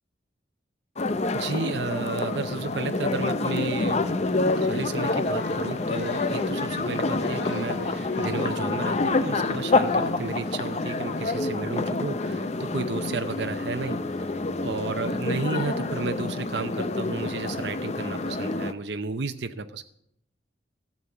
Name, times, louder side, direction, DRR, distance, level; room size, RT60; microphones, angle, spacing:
sound 1, 1.0-18.7, left 3 dB, 40° left, 0.6 m, -27 dB
voice 1, 1.3-4.1 4.6-14.3 14.6-19.8, right 3 dB, 75° right, 8 dB, 0.7 m, -32 dB
sound 2, 4.3-11.5, left 2 dB, 80° left, 1.7 m, -41 dB
13.5 x 7.4 x 7.9 m, 0.75 s
head